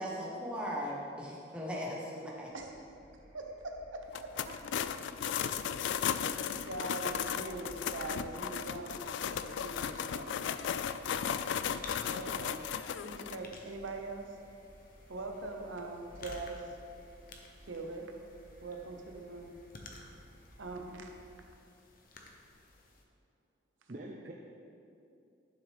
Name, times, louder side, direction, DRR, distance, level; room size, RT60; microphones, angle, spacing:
voice 1, 0.0-2.5, equal, 5° right, -4 dB, 1.2 m, -38 dB
sound 1, 2.5-21.5, equal, 65° right, 2.1 m, -58 dB
voice 2, 3.3-4.3 6.5-10.4 11.1-11.2 12.1-12.7 13.0-14.3 15.1-16.8 17.7-18.1 18.6-19.5 20.6-21.1, right 2 dB, 85° right, 3 dB, 0.8 m, -42 dB
sound 2, 4.1-13.4, left 8 dB, 70° left, 0.3 m, -35 dB
voice 3, 4.9-5.7 23.9-24.3, right 2 dB, 45° right, -1 dB, 0.6 m, -48 dB
sound 3, 5.8-23.0, left 2 dB, 45° left, 0.8 m, -55 dB
11.0 x 6.1 x 3.5 m, 2.6 s
head